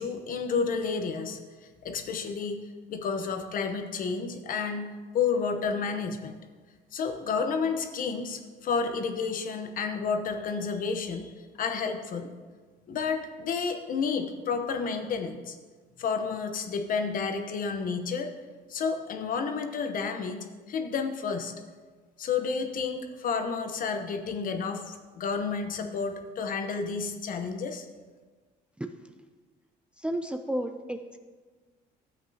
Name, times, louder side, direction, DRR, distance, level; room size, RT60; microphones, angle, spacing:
voice 1, 0.0-2.6 2.9-4.9 5.1-6.4 6.9-11.3 11.6-12.3 12.9-15.6 16.0-18.3 18.7-21.5 22.2-27.9, left 5 dB, 55° left, 6 dB, 0.9 m, -31 dB
voice 2, 30.0-31.2, right 1 dB, 5° right, 6 dB, 0.4 m, -32 dB
12.5 x 8.0 x 2.8 m, 1.4 s
cardioid pair, 110°, 17 cm